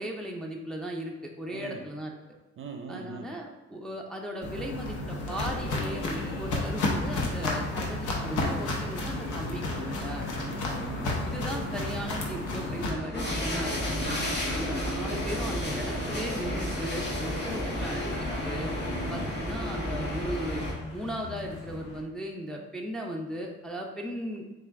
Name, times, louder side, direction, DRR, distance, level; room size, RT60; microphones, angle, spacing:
voice 1, 0.0-2.1 2.9-10.3 11.2-13.8 14.4-18.7 19.1-20.6 20.9-24.4, equal, ahead, -1 dB, 0.5 m, -37 dB
voice 2, 2.6-3.3 10.4-11.1 14.0-14.4 18.8-19.2, right 4 dB, 45° right, 4 dB, 0.6 m, -40 dB
Walk footsteps, 4.4-12.9, left 2 dB, 85° left, 0.9 m, -32 dB
sound 1, 5.5-22.0, left 2 dB, 55° left, 1.0 m, -41 dB
sound 2, 13.1-20.7, equal, 35° left, 1.3 m, -32 dB
4.2 x 2.4 x 3.5 m, 1.1 s
cardioid pair, 90°, 30 cm